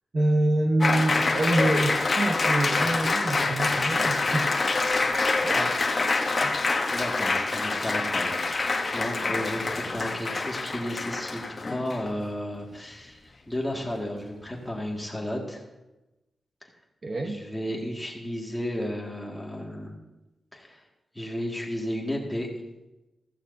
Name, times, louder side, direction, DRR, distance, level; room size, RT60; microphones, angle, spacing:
voice 1, 0.1-4.5 5.4-5.8 6.4-6.6 17.0-17.4, right 1 dB, 35° right, 4 dB, 1.0 m, -26 dB
Applause, 0.8-12.1, left 3 dB, 35° left, 1.0 m, -26 dB
voice 2, 6.9-11.4 11.7-13.2 13.5-15.6 17.3-20.0 20.5-20.8 21.2-22.5, left 1 dB, 5° left, -1 dB, 2.1 m, -33 dB
15.0 x 15.0 x 2.7 m, 1.0 s
wide cardioid pair, 135°, 0 cm